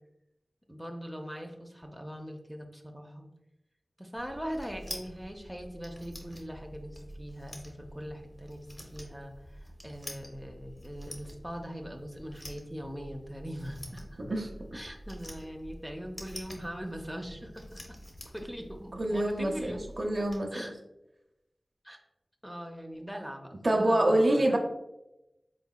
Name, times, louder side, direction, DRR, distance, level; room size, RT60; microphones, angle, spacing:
voice 1, 0.7-3.3 4.0-8.7 8.9-14.2 14.7-17.8 18.3-19.8 20.5-20.7 21.8-22.0 22.4-24.6, equal, 5° right, 2 dB, 0.5 m, -41 dB
sound 1, 4.2-20.4, equal, 35° left, 0.9 m, -47 dB
voice 2, 14.2-14.5 18.9-20.7 23.6-24.6, right 1 dB, 55° right, 2 dB, 0.6 m, -26 dB
4.0 x 4.0 x 2.2 m, 0.91 s
wide cardioid pair, 45°, 0 cm